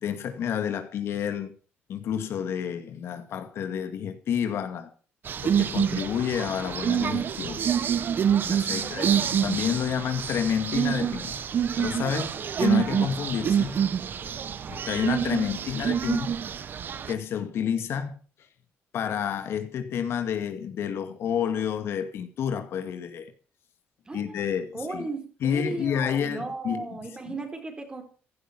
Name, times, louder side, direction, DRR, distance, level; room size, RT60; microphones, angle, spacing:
voice 1, 0.0-1.5 1.9-4.9 5.4-7.7 8.4-11.3 11.8-13.8 14.7-16.3 17.1-18.2 18.9-23.3 24.1-25.1 25.4-27.0 27.3-27.4, left 8 dB, 65° left, 2.0 m, -29 dB
sound 1, 5.3-17.1, right 8 dB, 50° right, 1.2 m, -27 dB
voice 2, 8.6-9.2 24.1-24.5 24.7-28.0, right 3 dB, 20° right, 4.2 m, -36 dB
16.0 x 11.5 x 5.9 m
cardioid pair, 110°, 5 cm